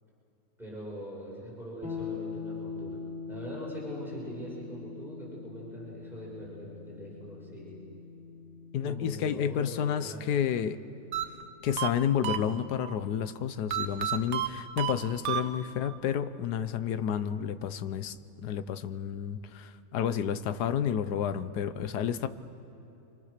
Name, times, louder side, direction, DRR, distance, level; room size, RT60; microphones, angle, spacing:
voice 1, 0.6-3.0 3.3-7.8 8.8-10.2 15.2-15.4, equal, ahead, -6 dB, 6.4 m, -42 dB
sound 1, 1.8-11.6, left 5 dB, 35° left, 3.4 m, -43 dB
voice 2, 8.7-10.8 11.6-18.1 18.4-22.3, left 8 dB, 75° left, 12 dB, 1.4 m, -30 dB
sound 2, 11.1-12.9 13.7-16.0, right 10 dB, 55° right, 1.0 m, -33 dB
30.0 x 24.5 x 6.7 m, 2.9 s
omnidirectional pair, 1.8 m